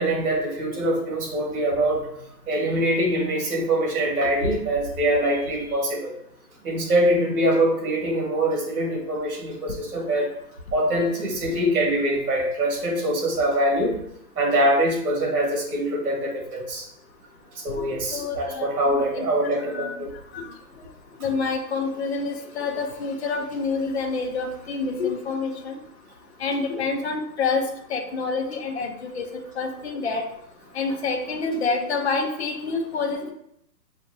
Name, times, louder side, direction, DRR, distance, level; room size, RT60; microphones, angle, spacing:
voice 1, 0.0-2.0 2.5-6.2 6.6-10.3 10.7-13.9 14.4-16.9 17.5-20.1, right 1 dB, 60° right, 0 dB, 1.6 m, -23 dB
voice 2, 18.1-19.3 19.7-19.9 20.3-20.4 21.2-25.8 26.4-27.6 27.9-29.2 29.6-30.2 30.7-33.3, left 4 dB, 40° left, 3 dB, 0.6 m, -27 dB
5.8 x 2.5 x 2.7 m, 0.74 s
hypercardioid pair, 155°, 50 cm